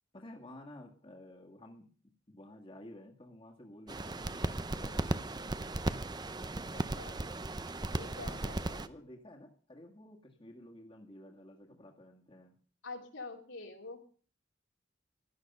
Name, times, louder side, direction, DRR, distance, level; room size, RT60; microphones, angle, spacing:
voice 1, 0.1-1.9 2.3-5.1 8.2-12.6, left 1 dB, 25° left, 1 dB, 1.9 m, -52 dB
sound 1, 3.9-8.9, right 2 dB, 20° right, 0.7 m, -36 dB
voice 2, 6.7-7.2 7.9-8.6 12.8-14.0, left 3 dB, 80° left, 2 dB, 3.2 m, -46 dB
16.5 x 12.5 x 5.5 m, 0.42 s
head